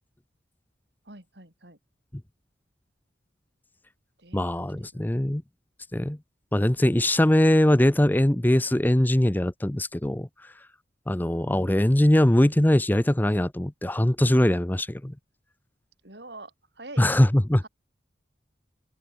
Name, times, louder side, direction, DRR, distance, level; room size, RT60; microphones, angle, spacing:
voice 1, 1.0-1.8 4.2-5.0 16.0-17.3 17.6-17.7, right 2 dB, 60° right, 6.0 m, -46 dB
voice 2, 4.3-5.4 5.9-6.2 6.5-10.3 11.1-15.1 17.0-17.7, left 1 dB, 10° left, 0.6 m, -21 dB
open air
head